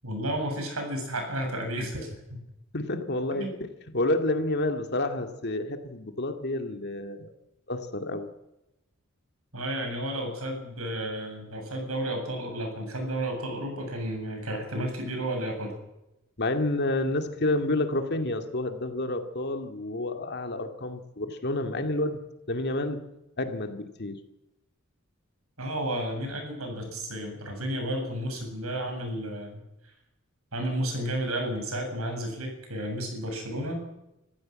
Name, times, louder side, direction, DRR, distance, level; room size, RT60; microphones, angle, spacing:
voice 1, 0.0-2.4 3.4-3.5 9.5-15.8 25.6-29.6 30.5-33.8, right 1 dB, 80° right, 4 dB, 7.7 m, -32 dB
voice 2, 2.7-3.6 3.9-7.3 7.7-8.3 16.4-23.1 23.4-24.2, left 2 dB, 50° left, 6 dB, 2.2 m, -29 dB
26.0 x 15.0 x 7.6 m, 0.91 s
head